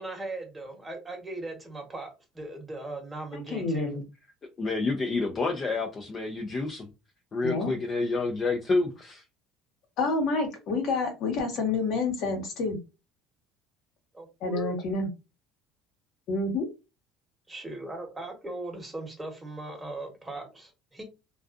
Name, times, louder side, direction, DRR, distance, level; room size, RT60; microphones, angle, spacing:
voice 1, 0.0-4.0 14.1-14.7 17.5-21.0, right 2 dB, 15° right, 1.1 m, -39 dB
voice 2, 3.3-4.0 7.4-7.8 10.0-12.8 14.4-15.1 16.3-16.6, left 3 dB, 65° left, 1.1 m, -28 dB
voice 3, 4.6-6.9 7.3-9.2, left 3 dB, 35° left, 0.5 m, -28 dB
2.4 x 2.3 x 2.4 m
supercardioid pair, 95°, 0 cm